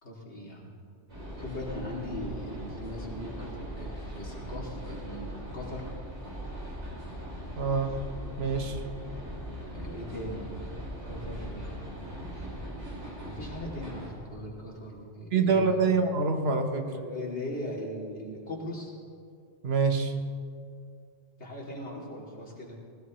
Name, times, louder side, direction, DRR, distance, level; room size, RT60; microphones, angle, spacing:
voice 1, 0.0-0.7 1.4-5.9 9.7-10.7 11.1-12.1 13.2-15.9 16.8-18.9 21.4-22.8, left 1 dB, 80° left, -4 dB, 3.0 m, -39 dB
sound 1, 1.1-14.1, equal, 85° right, 4.9 m, -39 dB
voice 2, 7.6-8.1 8.4-8.8 15.3-16.9 19.6-20.1, right 4 dB, 70° right, 5 dB, 1.3 m, -26 dB
19.5 x 18.0 x 3.1 m, 2.3 s
omnidirectional pair, 1.1 m